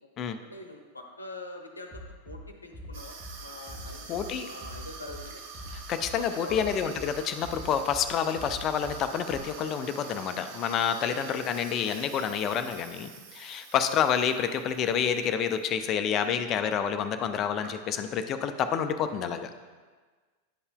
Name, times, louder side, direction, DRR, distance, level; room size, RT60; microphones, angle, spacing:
voice 1, 0.4-5.4 6.2-6.8 13.8-14.2, left 2 dB, 80° left, 4 dB, 0.8 m, -44 dB
Bass drum, 1.9-2.4 2.7-3.3 3.7-4.3 4.6-5.2 5.5-6.1 6.5-7.1 7.4-8.0 8.4-9.0 9.3-9.4, left 1 dB, 10° right, 1.5 m, -42 dB
Water tap faucet / Sink (filling or washing), 2.9-15.6 16.0-16.3 17.0-17.1 17.3-18.1, right 5 dB, 50° right, 0.8 m, -46 dB
voice 2, 4.1-4.5 5.9-19.5, left 8 dB, 35° left, 9 dB, 0.4 m, -28 dB
10.5 x 5.5 x 2.2 m, 1.4 s
figure-of-eight pair, 90°, 0 cm